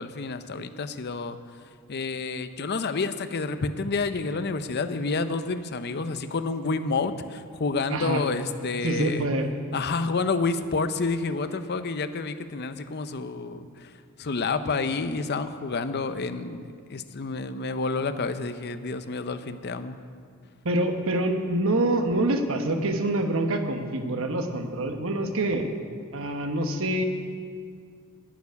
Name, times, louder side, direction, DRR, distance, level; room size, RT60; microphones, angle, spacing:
voice 1, 0.0-1.4 1.9-9.3 9.7-13.9 14.2-16.6 16.9-20.0, left 4 dB, 50° left, 10 dB, 0.6 m, -29 dB
voice 2, 7.9-8.2 8.8-9.5 20.6-25.8 26.1-27.0, right 1 dB, 65° right, 5 dB, 1.1 m, -26 dB
11.5 x 7.0 x 9.6 m, 2.1 s
head